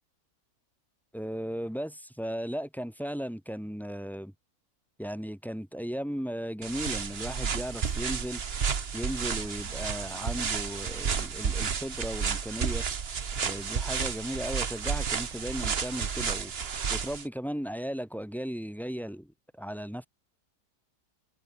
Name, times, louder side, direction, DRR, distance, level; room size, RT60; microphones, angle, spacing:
voice 1, 1.1-4.3 5.0-8.4 8.9-12.8 13.4-16.5 16.9-20.1, equal, ahead, 4.4 m, -36 dB
sound 1, 6.6-17.2, right 6 dB, 40° right, 1.3 m, -31 dB
omnidirectional pair, 1.7 m